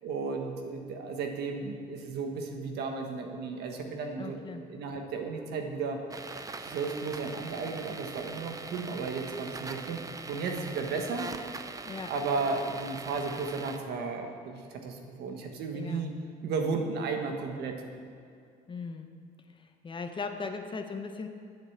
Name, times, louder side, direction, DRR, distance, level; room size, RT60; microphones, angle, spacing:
voice 1, 0.0-4.4 4.7-6.0 6.6-10.0 10.3-11.3 12.1-16.1 16.4-17.8, right 4 dB, 75° right, 3 dB, 1.5 m, -34 dB
voice 2, 4.2-4.7 11.8-12.1 15.7-16.1 18.7-19.1 19.5-21.3, left 4 dB, 30° left, 6 dB, 0.9 m, -38 dB
sound 1, 6.1-13.8, right 3 dB, 20° right, 0.6 m, -42 dB
9.0 x 7.6 x 7.3 m, 2.4 s
cardioid pair, 110°, 17 cm